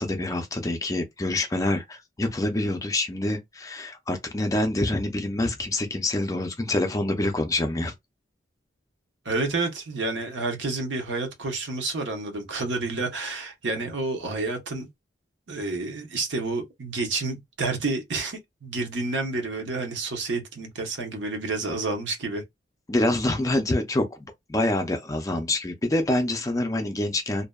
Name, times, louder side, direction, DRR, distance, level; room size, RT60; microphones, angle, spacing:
voice 1, 0.0-7.9 22.9-27.4, left 1 dB, 15° left, 0.4 m, -26 dB
voice 2, 9.2-14.9 15.5-22.4, right 3 dB, 70° right, 0.8 m, -29 dB
2.6 x 2.1 x 2.2 m
head